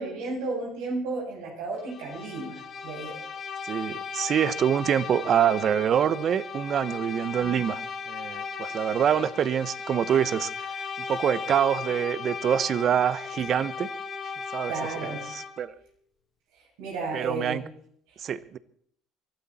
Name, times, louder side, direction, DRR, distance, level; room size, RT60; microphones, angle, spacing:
voice 1, 0.0-3.2 14.7-15.2 16.6-17.6, right 3 dB, 80° right, -1 dB, 7.5 m, -33 dB
Bowed string instrument, 1.8-15.7, left 5 dB, 50° left, 2.9 m, -36 dB
voice 2, 3.6-13.9 14.5-14.7 15.0-15.7 17.1-17.6 18.2-18.6, right 9 dB, 50° right, 17 dB, 0.9 m, -26 dB
23.5 x 12.5 x 4.3 m, 0.63 s
supercardioid pair, 85°, 0 cm